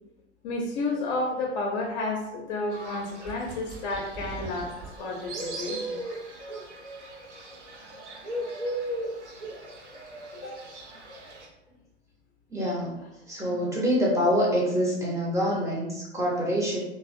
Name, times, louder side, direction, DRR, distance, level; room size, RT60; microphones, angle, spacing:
voice 1, 0.4-4.7 5.0-6.2 10.3-10.7 13.4-13.7, left 2 dB, 45° left, -1 dB, 0.4 m, -31 dB
Fowl, 2.7-11.5, right 1 dB, 90° right, 0.5 m, -38 dB
sound 1, 3.2-4.9, right 2 dB, 60° right, 0.8 m, -41 dB
voice 2, 12.5-12.9 13.3-16.8, equal, 10° right, -4 dB, 0.6 m, -25 dB
2.4 x 2.0 x 2.5 m, 0.91 s
figure-of-eight pair, 90°, 34 cm